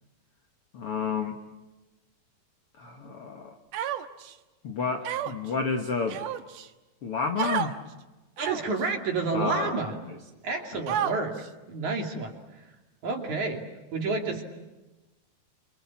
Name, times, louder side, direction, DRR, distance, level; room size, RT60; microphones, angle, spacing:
voice 1, 0.7-1.4 2.8-3.6 4.6-6.2 7.0-7.8 9.3-9.8 10.7-10.8, left 5 dB, 70° left, 4 dB, 1.3 m, -30 dB
Human voice, 3.7-4.3 5.0-5.5 6.1-6.7 7.4-7.7 8.4-8.8 9.5-9.6 10.9-11.5, right 10 dB, 65° right, 2.2 m, -30 dB
voice 2, 8.4-10.0 10.4-11.4 11.7-12.3 13.0-13.6 13.9-14.4, right 3 dB, 45° right, 2 dB, 3.8 m, -29 dB
28.0 x 27.5 x 7.4 m, 1.1 s
omnidirectional pair, 5.3 m